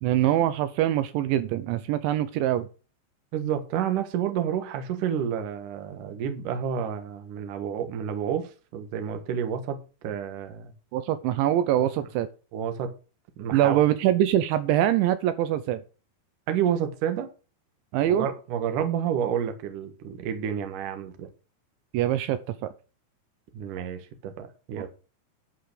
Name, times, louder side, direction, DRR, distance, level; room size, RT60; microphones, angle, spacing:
voice 1, 0.0-2.7 10.9-12.3 13.5-15.8 17.9-18.3 21.9-22.7 24.8-24.9, right 12 dB, 80° right, 12 dB, 2.9 m, -24 dB
voice 2, 3.3-9.8 10.0-10.7 11.8-11.9 12.5-12.9 13.4-13.8 16.5-17.3 18.1-21.3 23.5-24.9, right 8 dB, 60° right, 7 dB, 2.4 m, -30 dB
11.5 x 5.7 x 6.8 m, 0.35 s
omnidirectional pair, 5.5 m